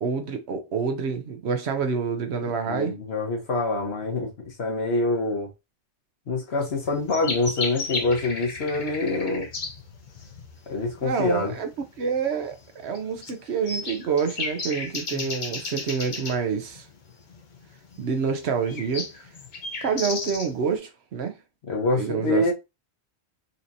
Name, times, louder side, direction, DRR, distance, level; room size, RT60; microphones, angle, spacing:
voice 1, 0.0-3.0 11.0-11.7 12.0-16.9 18.0-19.1 19.8-21.4 21.9-22.5, right 6 dB, 70° right, 1.0 m, -27 dB
voice 2, 2.7-5.5 6.3-9.5 10.7-11.5 15.1-15.2 21.7-22.5, left 3 dB, 65° left, 1.3 m, -26 dB
sound 1, 6.6-20.7, left 3 dB, 50° left, 0.8 m, -35 dB
4.1 x 2.9 x 2.6 m
omnidirectional pair, 1.2 m